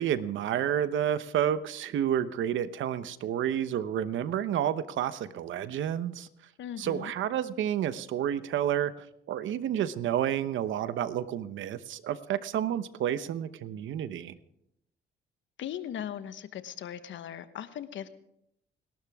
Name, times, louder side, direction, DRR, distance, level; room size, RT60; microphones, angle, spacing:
voice 1, 0.0-6.3 6.8-14.4, right 10 dB, 75° right, 13 dB, 1.0 m, -30 dB
voice 2, 6.6-7.1 15.6-18.1, left 10 dB, 75° left, 11 dB, 1.2 m, -38 dB
29.5 x 12.0 x 3.6 m, 0.79 s
cardioid pair, 90°, 20 cm